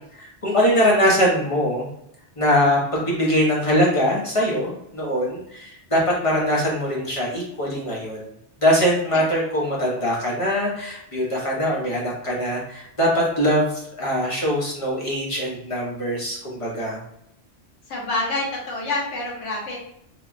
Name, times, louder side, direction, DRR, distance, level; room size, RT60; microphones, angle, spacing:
voice 1, 0.4-1.9 2.4-8.2 8.6-17.0, equal, 35° left, -4 dB, 0.7 m, -22 dB
voice 2, 17.9-19.8, left 2 dB, 80° left, -3 dB, 1.1 m, -27 dB
3.3 x 2.2 x 2.4 m, 0.77 s
omnidirectional pair, 1.2 m